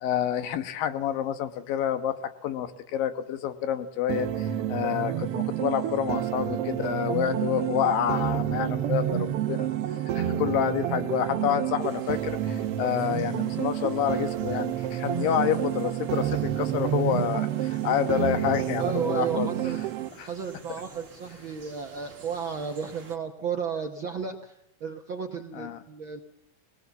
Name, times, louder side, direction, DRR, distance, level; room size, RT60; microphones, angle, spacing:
voice 1, 0.0-9.7 10.2-19.5 20.2-20.3 25.5-25.8, left 10 dB, 90° left, 10 dB, 3.0 m, -28 dB
sound 1, 4.1-20.1, right 11 dB, 85° right, 1.3 m, -29 dB
sound 2, 11.8-23.2, right 5 dB, 40° right, 3.4 m, -50 dB
voice 2, 18.8-19.8 20.2-26.2, right 6 dB, 60° right, 3 dB, 1.3 m, -33 dB
21.5 x 19.0 x 7.1 m, 0.76 s
omnidirectional pair, 3.9 m